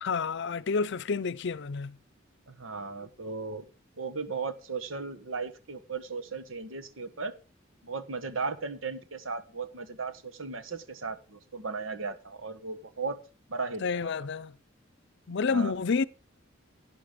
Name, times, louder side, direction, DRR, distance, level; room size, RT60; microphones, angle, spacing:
voice 1, 0.0-2.0 13.8-14.5 15.3-16.0, left 5 dB, 65° left, 0.6 m, -29 dB
voice 2, 2.5-3.6 4.0-7.3 7.8-13.2 13.5-14.1 15.5-15.7, right 4 dB, 85° right, 1.4 m, -36 dB
11.0 x 10.0 x 5.1 m
head